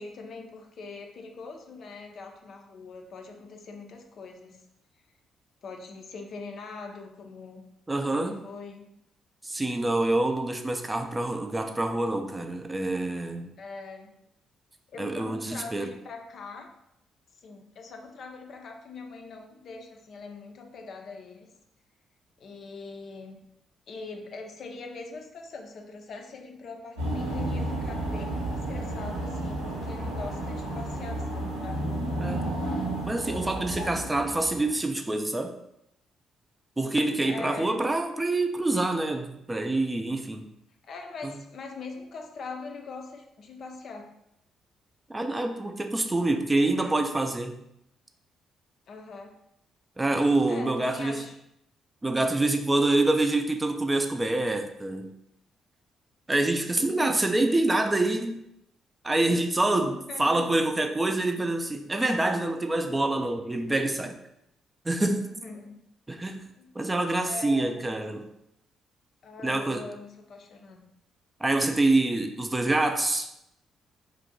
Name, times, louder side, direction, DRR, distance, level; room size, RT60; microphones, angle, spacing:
voice 1, 0.0-4.6 5.6-7.6 8.1-8.9 13.6-14.2 14.9-16.7 17.3-21.5 22.4-23.4 23.9-32.1 37.3-37.8 40.8-44.2 48.9-49.4 50.5-51.4 56.8-57.4 59.8-60.5 65.0-65.8 66.6-66.8 67.3-68.1 69.2-70.8, left 4 dB, 55° left, 3 dB, 0.4 m, -42 dB
voice 2, 7.9-8.4 9.4-13.5 15.0-15.9 32.2-32.6 33.0-35.6 36.8-40.5 41.2-41.3 45.1-47.6 50.0-51.2 52.0-55.1 56.3-58.4 59.0-64.2 64.9-65.2 66.1-66.4 66.8-68.2 69.4-69.8 71.4-73.3, right 2 dB, 20° right, 5 dB, 0.3 m, -26 dB
sound 1, 27.0-34.7, right 1 dB, 85° right, 0.6 m, -32 dB
2.5 x 2.0 x 3.8 m, 0.80 s
hypercardioid pair, 40°, 0 cm